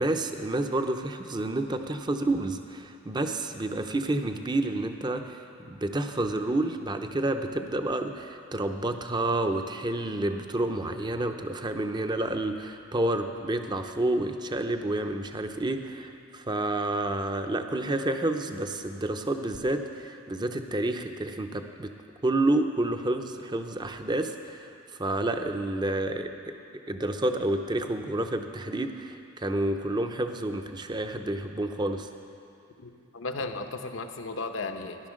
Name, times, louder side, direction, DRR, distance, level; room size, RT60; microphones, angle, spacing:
voice 1, 0.0-21.9 22.2-24.7 25.0-26.5 26.9-32.1, right 2 dB, 20° right, 6 dB, 0.7 m, -29 dB
voice 2, 32.8-35.0, left 3 dB, 70° left, 6 dB, 0.9 m, -35 dB
14.5 x 11.0 x 6.4 m, 2.5 s
head